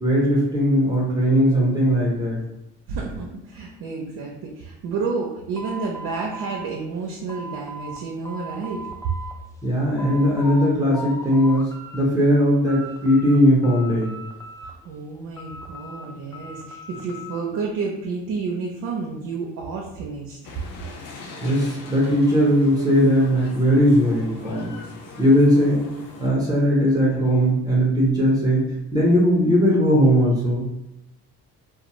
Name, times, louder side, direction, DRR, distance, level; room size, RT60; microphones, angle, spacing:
voice 1, 0.0-2.4 9.6-14.1 21.4-24.7 25.2-25.9 26.2-30.7, equal, 10° right, -6 dB, 0.9 m, -19 dB
voice 2, 2.9-8.8 14.6-20.4, right 4 dB, 65° right, -2 dB, 0.6 m, -30 dB
sound 1, 5.5-8.0 8.3-9.3 9.7-10.7 10.9-12.0 12.4-13.4 13.6-14.9 15.4-17.4, equal, 10° left, 0.3 m, -38 dB
sound 2, 20.4-26.3, left 3 dB, 65° left, 0.6 m, -41 dB
2.4 x 2.3 x 3.0 m, 0.90 s
supercardioid pair, 65°, 37 cm